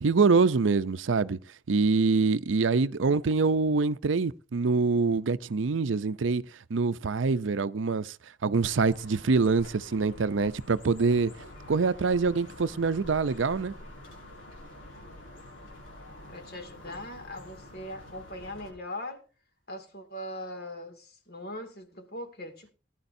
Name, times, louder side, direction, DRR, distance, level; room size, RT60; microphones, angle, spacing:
voice 1, 0.0-1.4 1.7-6.4 6.7-8.0 8.4-11.3 11.7-13.7, right 4 dB, 85° right, 0.6 m, -25 dB
sound 1, 8.6-18.7, left 1 dB, 90° left, 7.4 m, -47 dB
voice 2, 16.3-19.3 19.7-22.7, left 1 dB, 55° left, 2.4 m, -40 dB
19.0 x 11.0 x 2.7 m
head